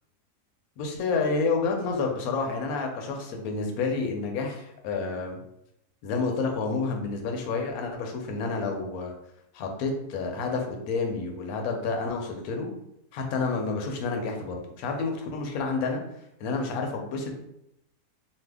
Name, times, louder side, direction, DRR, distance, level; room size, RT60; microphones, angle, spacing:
voice 1, 0.8-5.4 6.0-9.1 9.5-12.7 13.1-16.0 16.4-17.3, left 4 dB, 70° left, 2 dB, 1.0 m, -29 dB
2.7 x 2.3 x 3.4 m, 0.80 s
omnidirectional pair, 1.7 m